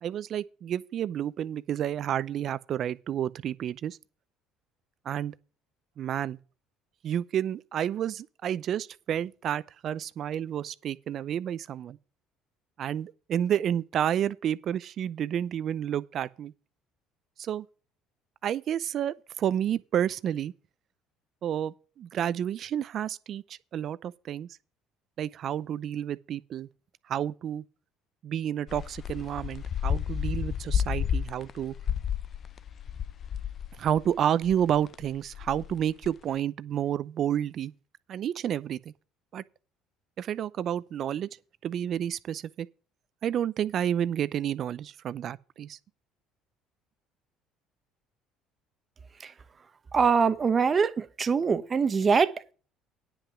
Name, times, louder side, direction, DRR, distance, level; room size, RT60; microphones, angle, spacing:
voice 1, 0.0-4.0 5.0-5.3 6.0-6.4 7.0-12.0 12.8-16.5 17.4-17.6 18.4-20.5 21.4-24.5 25.2-26.7 27.1-27.6 28.2-31.7 33.8-37.7 38.1-38.8 39.3-39.4 40.2-41.3 41.6-42.7 43.2-45.8, right 10 dB, 55° right, 0.6 m, -30 dB
sound 1, 28.7-34.1 34.4-36.1, left 8 dB, 45° left, 0.5 m, -32 dB
voice 2, 49.9-52.5, right 5 dB, 35° right, 1.0 m, -24 dB
9.8 x 5.8 x 6.9 m
supercardioid pair, 75°, 0 cm